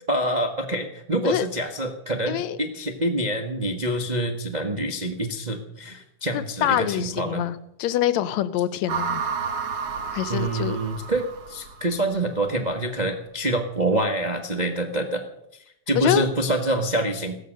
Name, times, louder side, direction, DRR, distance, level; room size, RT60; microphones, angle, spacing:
voice 1, 0.1-7.4 10.3-15.2 15.5-17.4, right 1 dB, 70° right, 4 dB, 0.4 m, -26 dB
voice 2, 2.3-2.6 6.3-9.2 10.1-10.8 16.0-16.3, left 12 dB, 75° left, 14 dB, 2.0 m, -25 dB
sound 1, 8.9-12.2, right 6 dB, 50° right, 1.8 m, -31 dB
16.0 x 13.5 x 6.5 m, 0.79 s
omnidirectional pair, 3.4 m